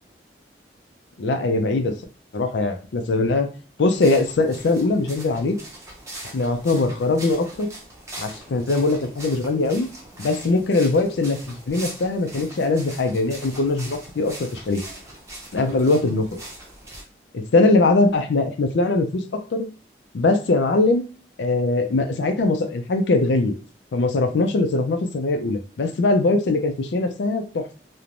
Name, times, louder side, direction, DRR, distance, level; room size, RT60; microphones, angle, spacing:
voice 1, 1.2-1.9 2.3-3.5 3.8-5.6 6.3-7.7 8.2-9.9 10.2-14.8 15.5-16.4 17.3-19.7 20.1-21.0 21.4-23.5 23.9-27.7, left 2 dB, 85° left, 7 dB, 0.4 m, -21 dB
sound 1, 3.9-17.0, right 1 dB, 15° right, 0.6 m, -41 dB
3.1 x 2.1 x 2.5 m, 0.36 s
head